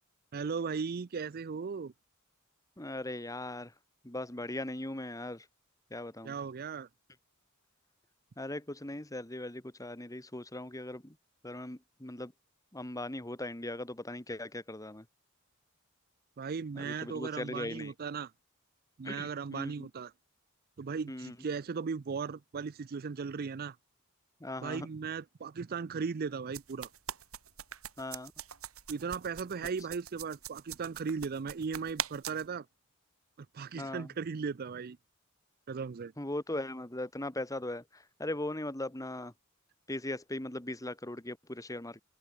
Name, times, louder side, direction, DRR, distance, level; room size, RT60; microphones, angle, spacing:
voice 1, 0.3-1.9 6.2-6.9 16.4-18.3 19.0-20.1 20.8-23.8 24.6-26.9 28.9-32.7 33.5-35.0 35.7-36.1, right 5 dB, 45° right, 0.5 m, -37 dB
voice 2, 2.8-3.7 4.0-5.5 5.9-6.4 8.4-11.2 11.4-12.3 12.7-15.1 16.7-17.9 19.0-19.9 21.1-21.4 24.4-24.9 28.0-28.3 33.8-34.1 36.2-39.3 39.9-42.0, left 1 dB, 15° left, 1.8 m, -39 dB
sound 1, 26.5-32.5, right 9 dB, 90° right, 3.8 m, -42 dB
open air
head